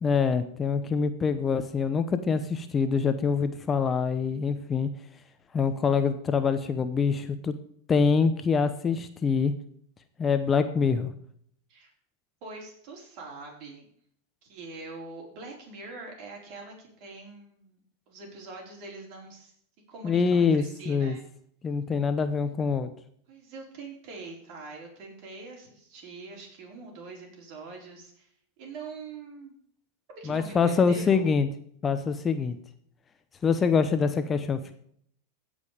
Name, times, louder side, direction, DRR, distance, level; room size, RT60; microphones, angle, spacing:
voice 1, 0.0-4.9 5.5-7.5 7.9-9.5 10.2-11.1 20.0-21.2 21.6-22.9 30.3-31.5 31.8-32.6 33.4-34.7, left 5 dB, 25° left, 10 dB, 0.8 m, -25 dB
voice 2, 12.4-13.9 14.4-19.5 19.9-21.2 23.3-28.3 28.6-29.5 30.2-31.3, right 3 dB, 50° right, 0 dB, 4.3 m, -43 dB
16.0 x 5.3 x 5.0 m, 0.64 s
hypercardioid pair, 95°, 0 cm